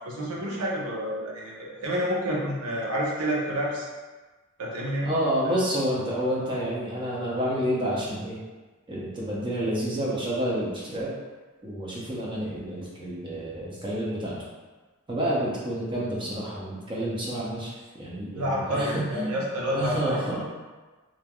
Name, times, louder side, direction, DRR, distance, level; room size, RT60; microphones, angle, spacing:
voice 1, 0.0-3.9 4.6-5.1 5.4-5.6 18.3-20.2, equal, 90° right, -3 dB, 0.7 m, -29 dB
voice 2, 5.0-8.4 8.9-11.1 11.6-14.4 15.1-17.7 18.0-20.4, right 1 dB, 20° right, -6 dB, 0.6 m, -29 dB
3.1 x 2.5 x 2.2 m, 1.3 s
head